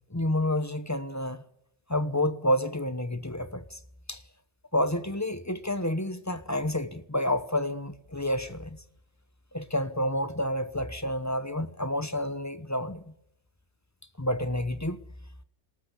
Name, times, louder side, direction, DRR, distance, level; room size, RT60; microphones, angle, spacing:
voice 1, 0.1-1.4 1.9-3.8 4.1-4.2 4.7-8.8 9.5-13.1 14.2-15.0, left 1 dB, 15° left, 1.0 m, -29 dB
23.5 x 13.5 x 8.6 m
omnidirectional pair, 1.2 m